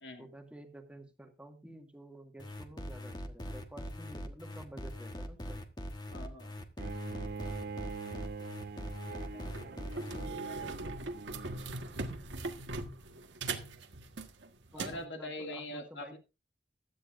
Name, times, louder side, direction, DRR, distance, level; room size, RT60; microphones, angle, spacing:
voice 1, 0.2-5.6 14.7-16.2, right 1 dB, 5° right, 1.7 m, -51 dB
sound 1, 2.4-10.3, equal, 25° left, 1.3 m, -42 dB
voice 2, 6.1-6.5 9.3-9.8 10.1-10.9 14.8-16.2, left 1 dB, 75° left, 2.3 m, -44 dB
Bowed string instrument, 6.8-11.8, right 4 dB, 60° right, 0.7 m, -43 dB
sound 2, 8.4-8.6 9.2-9.3 9.5-15.0, right 3 dB, 85° right, 1.5 m, -40 dB
16.0 x 12.5 x 2.6 m
head